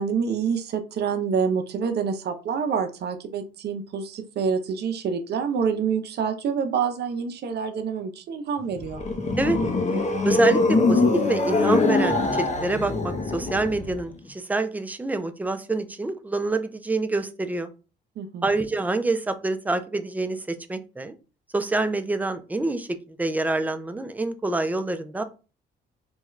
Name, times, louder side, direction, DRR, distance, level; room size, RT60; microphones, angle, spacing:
voice 1, 0.0-9.0 18.2-18.5, right 6 dB, 55° right, 7 dB, 0.6 m, -27 dB
sound 1, 8.7-14.0, left 3 dB, 35° left, 0.7 m, -23 dB
voice 2, 10.2-17.7 18.4-21.1 21.5-22.9 23.2-25.2, right 2 dB, 10° right, 8 dB, 0.4 m, -26 dB
3.5 x 2.3 x 3.1 m, 0.32 s
cardioid pair, 90°, 20 cm